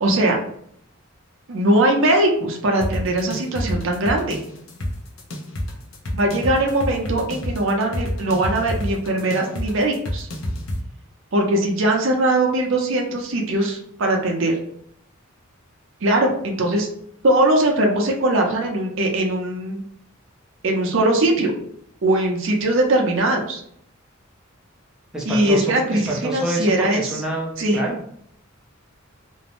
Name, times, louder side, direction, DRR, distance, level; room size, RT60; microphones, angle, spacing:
voice 1, 0.0-0.4 1.5-4.4 6.1-10.3 11.3-14.5 16.0-16.9 17.2-19.8 20.6-21.5 22.0-23.6 25.3-27.2 27.6-27.8, right 1 dB, 65° right, 2 dB, 0.5 m, -20 dB
sound 1, 2.8-10.8, left 1 dB, 70° left, 0.6 m, -28 dB
voice 2, 25.1-28.0, right 1 dB, 5° right, -4 dB, 0.5 m, -27 dB
2.5 x 2.0 x 2.9 m, 0.69 s
head